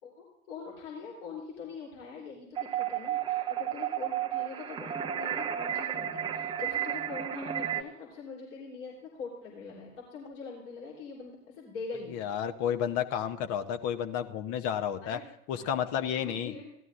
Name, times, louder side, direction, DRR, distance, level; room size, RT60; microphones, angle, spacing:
voice 1, 0.0-12.2 15.0-16.8, left 4 dB, 60° left, -3 dB, 3.6 m, -43 dB
sound 1, 2.6-7.8, right 10 dB, 15° right, 0.6 m, -32 dB
voice 2, 12.1-15.2 15.5-16.5, left 9 dB, 35° left, 8 dB, 0.8 m, -31 dB
16.5 x 12.5 x 2.5 m, 0.81 s
figure-of-eight pair, 90°, 40 cm